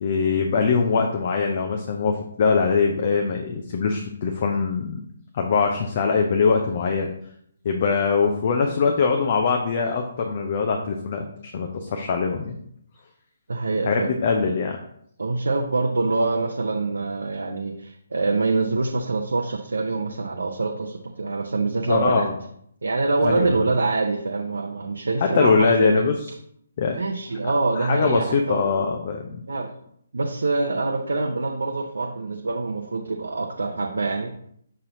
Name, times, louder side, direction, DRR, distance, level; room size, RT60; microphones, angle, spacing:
voice 1, 0.0-5.0 5.3-7.1 7.6-12.6 13.9-14.8 21.9-22.3 23.2-23.6 25.3-26.2 26.8-27.0 27.8-29.4, left 5 dB, 40° left, 3 dB, 0.6 m, -22 dB
voice 2, 13.5-14.1 15.2-22.3 22.8-26.1 26.9-28.9 29.5-29.7 30.1-34.4, right 3 dB, 65° right, 3 dB, 0.6 m, -25 dB
6.4 x 4.2 x 3.9 m, 0.68 s
figure-of-eight pair, 140°, 0 cm